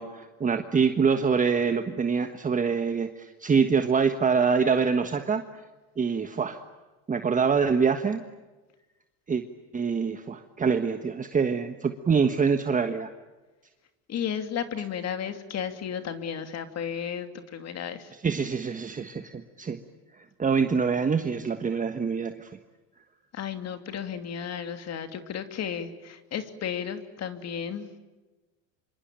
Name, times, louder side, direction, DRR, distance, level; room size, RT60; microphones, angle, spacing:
voice 1, 0.0-5.4 6.0-6.6 7.1-8.2 9.3-9.4 9.7-13.1 18.2-19.8 20.4-22.5, right 5 dB, 20° right, 7 dB, 1.4 m, -25 dB
voice 2, 14.1-18.1 23.3-28.0, left 8 dB, 45° left, 8 dB, 2.8 m, -33 dB
26.5 x 25.0 x 8.9 m, 1.2 s
supercardioid pair, 115°, 37 cm